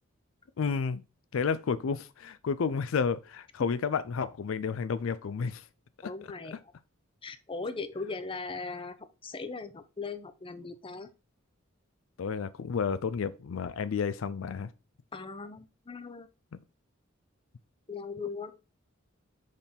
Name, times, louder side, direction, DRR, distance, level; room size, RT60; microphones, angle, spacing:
voice 1, 0.6-1.0 1.3-5.6 6.0-6.1 12.2-14.7, left 5 dB, 70° left, 0.4 m, -31 dB
voice 2, 6.0-6.6 7.2-9.0 9.2-11.1 15.1-16.3 17.9-18.5, left 4 dB, 25° left, 0.6 m, -39 dB
6.5 x 3.6 x 5.7 m
head